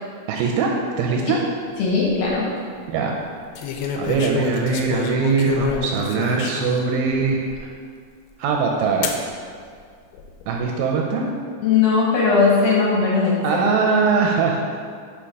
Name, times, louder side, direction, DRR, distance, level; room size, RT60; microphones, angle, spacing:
voice 1, 0.3-1.4 2.9-3.2 4.0-7.7 8.4-9.2 10.5-11.3 13.4-14.6, right 4 dB, 80° right, 1 dB, 2.1 m, -21 dB
voice 2, 1.8-2.5 11.6-13.4, left 4 dB, 65° left, -5 dB, 2.4 m, -18 dB
sound 1, 1.9-2.3 3.6-6.9 7.5-7.6 9.0-9.2 10.1-10.6, left 6 dB, 85° left, 2.5 m, -28 dB
5.8 x 4.8 x 5.1 m, 2.1 s
omnidirectional pair, 4.4 m